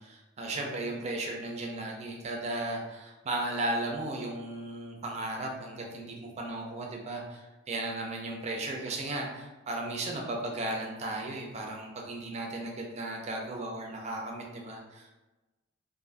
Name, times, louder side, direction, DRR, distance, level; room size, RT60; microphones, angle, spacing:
voice 1, 0.0-15.2, right 2 dB, 35° right, 0 dB, 0.4 m, -35 dB
2.4 x 2.2 x 2.5 m, 1.1 s
head